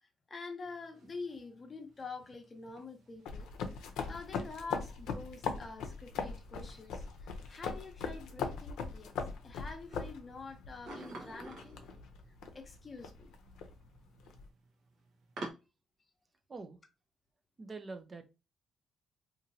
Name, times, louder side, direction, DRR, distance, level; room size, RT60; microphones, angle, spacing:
voice 1, 0.0-9.1 9.4-11.8 12.5-13.3, left 4 dB, 35° left, 0.7 m, -47 dB
sound 1, 0.6-15.5, right 2 dB, 70° right, 0.9 m, -53 dB
sound 2, 3.2-14.5, left 5 dB, 85° left, 0.5 m, -41 dB
voice 2, 17.6-18.3, right 3 dB, 30° right, 0.5 m, -45 dB
2.9 x 2.6 x 2.6 m
cardioid pair, 90°, 0 cm